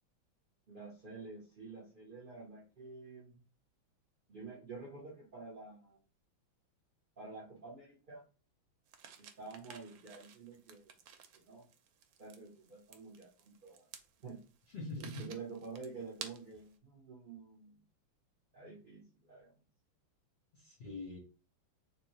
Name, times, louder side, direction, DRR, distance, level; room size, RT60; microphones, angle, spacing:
voice 1, 0.7-3.4 4.3-6.0 7.2-8.2 9.2-10.9 11.3-11.7 12.2-13.9 14.2-14.4 15.0-17.8 18.5-19.6, right 4 dB, 50° right, -3 dB, 0.6 m, -49 dB
sound 1, 8.9-16.7, right 8 dB, 80° right, 1.3 m, -54 dB
voice 2, 14.7-15.2 20.5-21.2, left 2 dB, 45° left, -3 dB, 0.9 m, -43 dB
3.4 x 2.9 x 3.0 m, 0.35 s
omnidirectional pair, 2.2 m